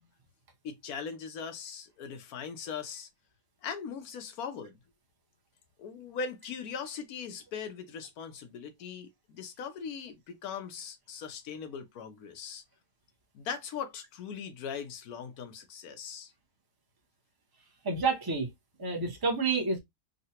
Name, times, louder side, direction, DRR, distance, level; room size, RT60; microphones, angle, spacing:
voice 1, 0.6-3.1 3.6-4.8 5.8-12.6 13.3-16.3, left 6 dB, 85° left, 1.2 m, -40 dB
voice 2, 17.8-18.5 18.8-19.8, right 4 dB, 20° right, 0.6 m, -29 dB
3.8 x 2.1 x 2.8 m
omnidirectional pair, 1.5 m